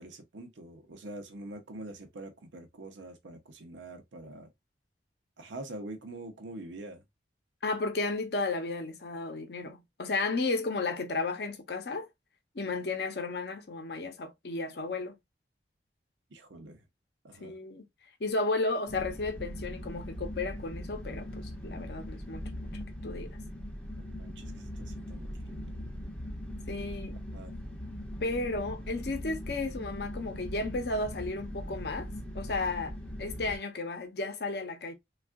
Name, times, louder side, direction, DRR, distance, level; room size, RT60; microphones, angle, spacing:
voice 1, 0.0-4.5 5.4-7.0 16.3-16.8 17.2-17.5 24.0-25.9 27.3-27.5, right 2 dB, 90° right, 0.6 m, -45 dB
voice 2, 7.6-12.1 12.5-15.1 17.4-17.8 18.2-22.4 23.0-23.4 26.7-27.1 28.2-32.1 32.3-34.9, left 3 dB, 60° left, 0.6 m, -33 dB
sound 1, 18.9-33.6, equal, 5° left, 0.5 m, -40 dB
3.4 x 2.3 x 2.3 m
head